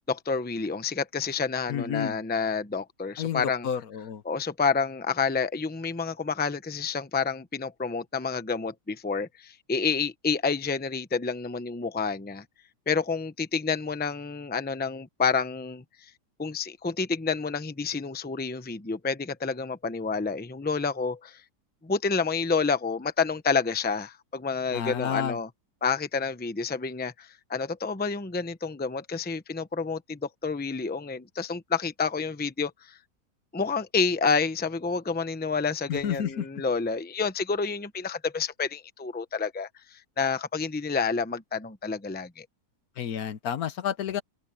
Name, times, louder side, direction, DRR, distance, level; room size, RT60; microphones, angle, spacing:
voice 1, 0.0-3.7 4.2-12.4 12.9-16.1 16.4-21.4 21.8-25.5 25.8-33.0 33.5-42.5, left 5 dB, 10° left, 0.7 m, -29 dB
voice 2, 1.7-2.2 3.2-4.2 24.7-25.4 35.9-36.4 43.0-44.2, left 9 dB, 70° left, 1.3 m, -30 dB
open air
omnidirectional pair, 1.7 m